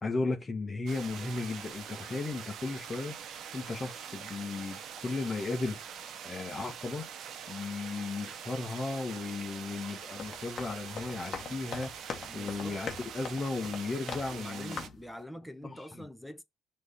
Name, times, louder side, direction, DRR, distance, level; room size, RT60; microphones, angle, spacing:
voice 1, 0.0-3.1 3.5-5.8 6.2-7.1 7.5-11.9 12.3-14.9 15.6-15.8, left 3 dB, 30° left, 1.6 m, -35 dB
sound 1, 0.9-14.9, right 8 dB, 65° right, 1.0 m, -44 dB
sound 2, 10.0-14.5 14.7-15.1, left 5 dB, 45° left, 1.5 m, -42 dB
voice 2, 12.3-12.8 14.3-16.4, equal, ahead, 1.3 m, -45 dB
6.2 x 3.4 x 5.6 m
supercardioid pair, 70°, 0 cm